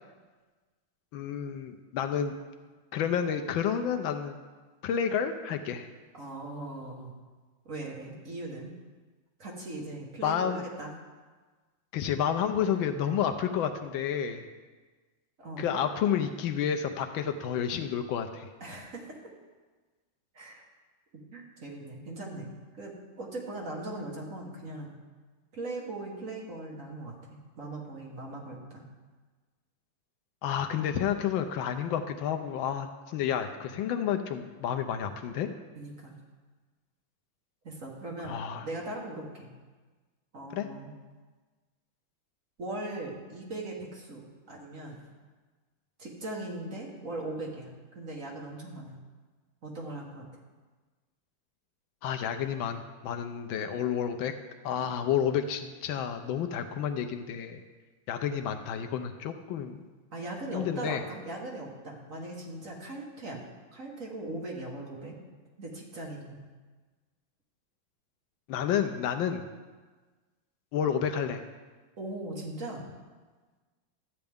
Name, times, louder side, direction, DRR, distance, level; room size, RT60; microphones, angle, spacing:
voice 1, 1.1-2.3 2.9-4.4 4.8-5.9 10.2-10.6 11.9-14.4 15.6-18.5 30.4-35.5 38.2-38.7 40.5-40.7 52.0-54.3 54.6-57.6 58.1-59.8 60.5-61.0 68.5-69.4 70.7-71.4, left 8 dB, 80° left, 7 dB, 1.3 m, -30 dB
voice 2, 6.1-7.1 7.6-8.7 9.4-10.9 15.4-15.6 18.6-19.2 20.3-20.7 21.3-24.9 25.5-27.1 27.6-28.8 35.7-36.1 37.6-39.5 40.3-40.9 42.6-45.0 46.0-49.0 49.6-50.2 54.7-54.9 60.1-63.4 63.7-65.2 65.6-66.4 72.0-72.8, right 2 dB, 45° right, -2 dB, 1.6 m, -39 dB
13.0 x 8.8 x 3.5 m, 1.4 s
omnidirectional pair, 2.2 m